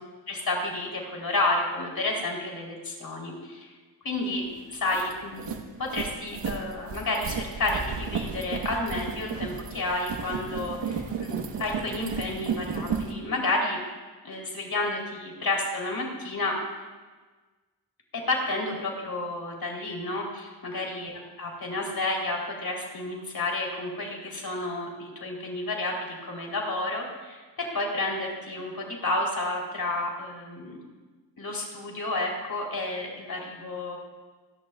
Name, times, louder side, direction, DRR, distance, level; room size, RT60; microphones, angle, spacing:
voice 1, 0.3-3.7 4.0-4.4 4.7-13.8 14.2-16.6 18.3-30.8 31.4-34.0, left 2 dB, 55° left, -1 dB, 3.7 m, -31 dB
sound 1, 4.3-4.4 4.7-13.1, right 6 dB, 80° right, 1.5 m, -33 dB
28.5 x 11.0 x 2.4 m, 1.3 s
cardioid pair, 75°, 43 cm